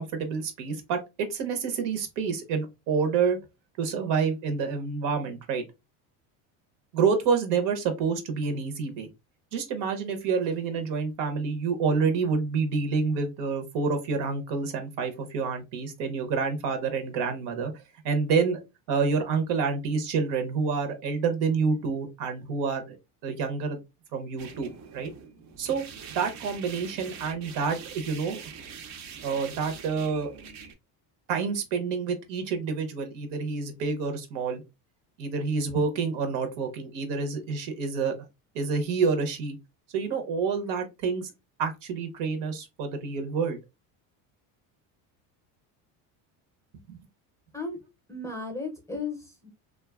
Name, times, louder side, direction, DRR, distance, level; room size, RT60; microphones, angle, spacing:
voice 1, 0.0-3.4 3.8-5.6 6.9-9.1 9.5-18.6 18.9-23.0 23.2-23.8 24.1-25.1 25.6-25.8 26.1-28.4 29.2-30.3 31.3-34.6 35.2-38.1 38.5-39.6 39.9-41.3 41.6-43.6 46.9-47.0, right 5 dB, 70° right, 7 dB, 0.8 m, -28 dB
sound 1, 24.4-30.7, right 6 dB, 40° right, 0.5 m, -44 dB
voice 2, 48.1-49.5, left 3 dB, 5° left, 2 dB, 0.6 m, -35 dB
2.5 x 2.3 x 2.2 m, 0.24 s
supercardioid pair, 115°, 43 cm